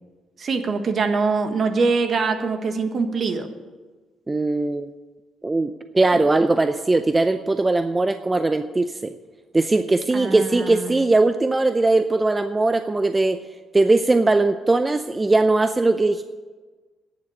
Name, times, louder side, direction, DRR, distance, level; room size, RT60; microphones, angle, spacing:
voice 1, 0.4-3.5 10.1-11.0, right 4 dB, 50° right, 7 dB, 1.4 m, -23 dB
voice 2, 4.3-4.9 5.4-9.1 9.5-13.4 13.7-16.2, right 2 dB, 20° right, 9 dB, 0.5 m, -20 dB
10.5 x 7.1 x 9.5 m, 1.3 s
cardioid pair, 90°, 0 cm